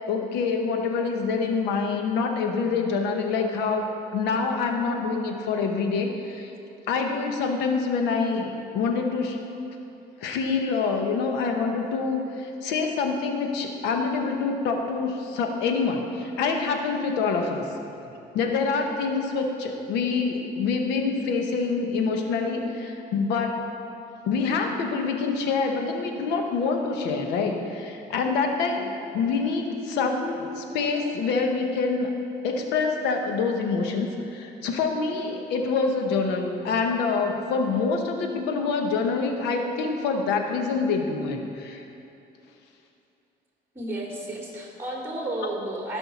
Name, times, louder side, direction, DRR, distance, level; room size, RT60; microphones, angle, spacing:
voice 1, 0.1-3.9 4.1-6.5 6.9-9.4 10.2-17.6 18.3-23.6 24.2-32.1 32.4-41.8, left 4 dB, 90° left, 3 dB, 1.1 m, -26 dB
voice 2, 43.7-46.0, right 1 dB, 15° right, -3 dB, 2.6 m, -32 dB
16.0 x 5.6 x 4.2 m, 2.8 s
cardioid pair, 110°, 17 cm